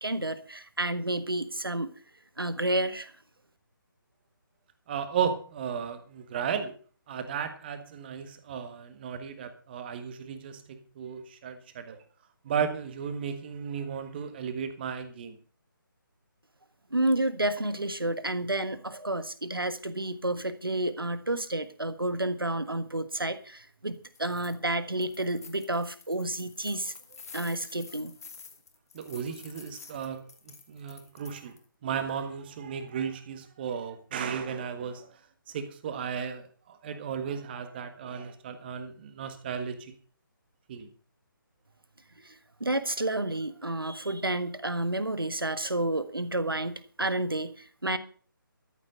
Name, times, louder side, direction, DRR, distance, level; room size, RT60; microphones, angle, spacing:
voice 1, 0.0-1.9 2.4-3.1 16.9-26.9 27.3-28.1 42.2-42.3 42.6-48.0, right 1 dB, 80° right, 12 dB, 1.5 m, -30 dB
voice 2, 4.9-6.7 7.1-12.0 12.4-15.4 28.9-31.5 31.8-35.1 35.5-39.9 40.7-40.9, right 7 dB, 25° right, 9 dB, 1.5 m, -35 dB
sound 1, 24.0-24.6 24.9-31.6, left 5 dB, 45° left, 1.8 m, -49 dB
13.5 x 7.9 x 6.5 m, 0.42 s
figure-of-eight pair, 145°, 12 cm